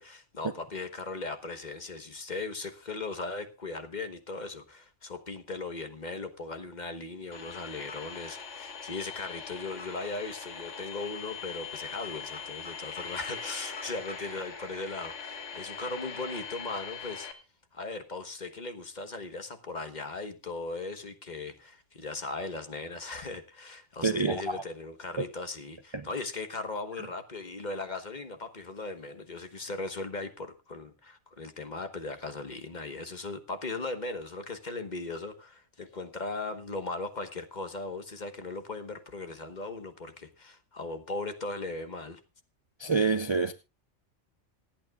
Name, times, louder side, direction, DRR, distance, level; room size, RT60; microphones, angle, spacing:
voice 1, 0.0-17.3 17.7-42.2, left 3 dB, 40° left, 1.3 m, -38 dB
sound 1, 7.3-17.3, left 6 dB, 75° left, 1.9 m, -41 dB
voice 2, 24.0-24.6 25.9-26.0 42.8-43.5, right 4 dB, 30° right, 0.5 m, -27 dB
26.5 x 9.0 x 2.4 m
omnidirectional pair, 1.2 m